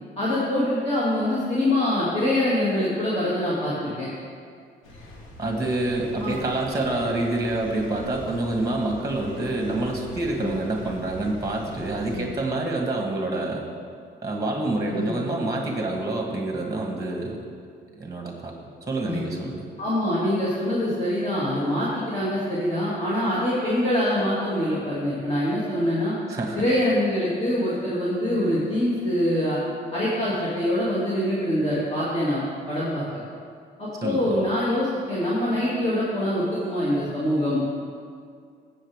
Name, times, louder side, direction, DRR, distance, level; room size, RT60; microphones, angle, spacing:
voice 1, 0.2-4.1 6.2-6.3 10.4-10.5 12.1-12.3 14.9-15.1 19.0-19.2 19.8-26.1 26.5-29.6 29.9-33.0 33.8-37.7, left 1 dB, 30° left, -9 dB, 2.5 m, -24 dB
sound 1, 4.8-12.3, left 1 dB, 90° left, 1.5 m, -43 dB
voice 2, 5.4-13.6 14.2-17.4 17.9-18.5 18.9-19.6 26.3-26.6 34.0-34.3, right 2 dB, 15° right, 0 dB, 1.6 m, -27 dB
14.5 x 7.9 x 3.6 m, 2.2 s
cardioid pair, 90°, 20 cm